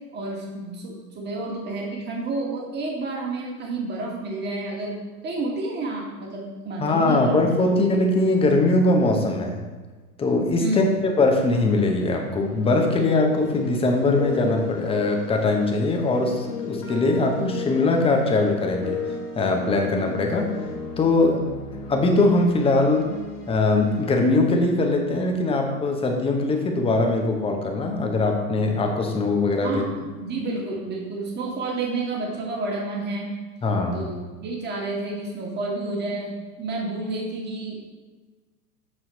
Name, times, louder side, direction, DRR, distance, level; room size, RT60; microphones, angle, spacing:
voice 1, 0.1-5.0 5.2-7.9 10.6-10.9 29.6-33.3 33.9-37.8, right 2 dB, 20° right, -1 dB, 1.8 m, -30 dB
voice 2, 6.8-9.6 10.2-20.6 21.0-21.5 21.9-23.1 23.5-29.8 33.6-34.0, left 2 dB, 10° left, 2 dB, 0.9 m, -21 dB
sound 1, 11.7-25.8, left 4 dB, 70° left, 1.6 m, -36 dB
8.2 x 4.5 x 4.2 m, 1.3 s
figure-of-eight pair, 100°, 47 cm